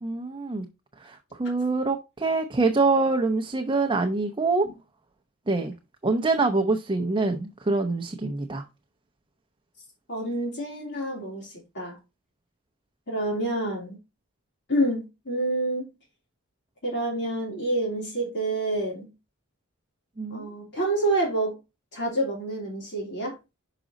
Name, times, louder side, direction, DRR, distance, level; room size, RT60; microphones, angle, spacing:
voice 1, 0.0-0.7 1.0-4.7 5.5-5.7 6.0-8.6 20.2-20.5, right 3 dB, 25° right, 0.6 m, -25 dB
voice 2, 10.1-12.0 13.1-14.0 14.7-15.9 16.8-19.1 20.3-21.5 21.9-23.3, right 1 dB, 55° left, 3.0 m, -28 dB
6.1 x 5.0 x 3.9 m
head